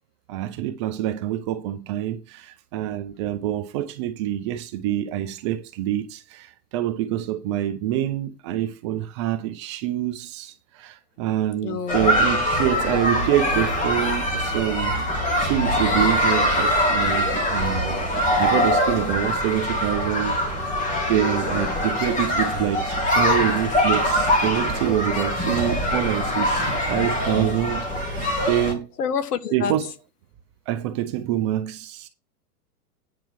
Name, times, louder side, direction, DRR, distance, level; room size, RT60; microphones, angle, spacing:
voice 1, 0.3-15.0 15.4-18.0 18.4-20.4 21.1-28.9 29.5-29.9 30.7-32.1, right 12 dB, 20° right, 0.4 m, -26 dB
voice 2, 11.6-12.7 21.5-21.9 29.0-29.7, left 7 dB, 80° left, 1.3 m, -29 dB
sound 1, 11.9-28.7, left 1 dB, 15° left, 2.9 m, -23 dB
9.4 x 4.5 x 6.2 m
hypercardioid pair, 140°, 46 cm